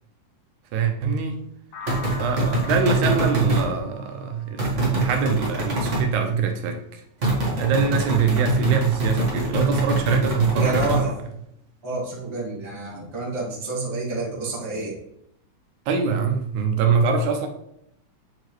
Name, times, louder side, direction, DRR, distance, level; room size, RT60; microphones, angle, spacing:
voice 1, 0.7-1.4 2.2-7.0 7.6-10.9 15.9-17.5, right 5 dB, 80° right, 5 dB, 2.1 m, -23 dB
sound 1, 1.7-5.6, left 2 dB, 80° left, 1.0 m, -42 dB
sound 2, 1.9-3.7 4.6-6.1 7.2-11.0, right 2 dB, 45° right, 0.9 m, -24 dB
voice 2, 10.5-11.2 11.8-15.0, right 3 dB, 15° right, -5 dB, 1.2 m, -28 dB
7.4 x 4.8 x 3.0 m, 0.75 s
omnidirectional pair, 3.4 m